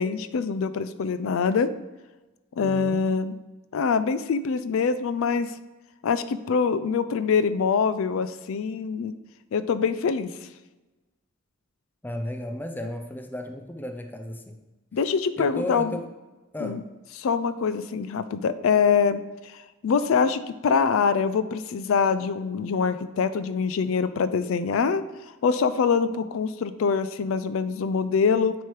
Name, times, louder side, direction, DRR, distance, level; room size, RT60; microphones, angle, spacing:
voice 1, 0.0-1.7 2.6-3.4 3.7-5.5 6.0-9.1 9.5-10.3 14.9-16.0 16.6-16.8 17.2-25.0 25.4-28.5, left 5 dB, 70° left, 13 dB, 0.4 m, -24 dB
voice 2, 2.6-3.0 12.0-14.6 15.4-16.1 16.5-16.9, left 1 dB, 10° left, 5 dB, 0.4 m, -34 dB
9.1 x 3.1 x 4.7 m, 1.1 s
head